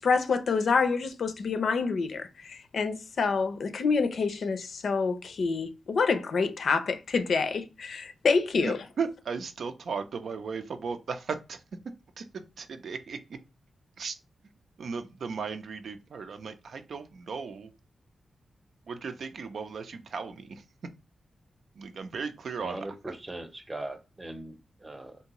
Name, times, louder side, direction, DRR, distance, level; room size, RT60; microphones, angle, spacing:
voice 1, 0.0-8.8, left 4 dB, 70° left, 0.5 m, -27 dB
voice 2, 8.6-11.6 12.2-13.2 14.0-14.2 14.8-17.7 18.9-20.6 21.8-22.8, right 5 dB, 70° right, 0.5 m, -36 dB
voice 3, 22.6-25.2, right 1 dB, 20° right, 0.7 m, -40 dB
3.5 x 2.7 x 2.9 m
cardioid pair, 90°, 0 cm